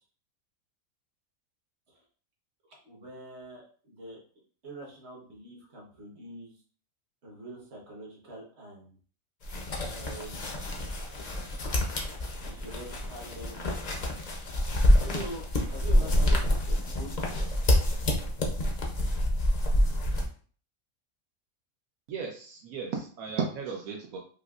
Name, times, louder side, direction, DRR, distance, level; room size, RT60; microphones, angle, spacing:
voice 1, 2.8-4.2 4.6-6.6 7.2-9.0 9.9-10.7 12.4-13.7 14.9-17.4, right 2 dB, 55° right, -2 dB, 1.3 m, -44 dB
sound 1, 9.4-20.3, left 1 dB, 50° left, 0.5 m, -27 dB
voice 2, 22.1-24.2, right 5 dB, 80° right, 0 dB, 1.0 m, -34 dB
5.1 x 2.0 x 2.4 m, 0.43 s
omnidirectional pair, 1.4 m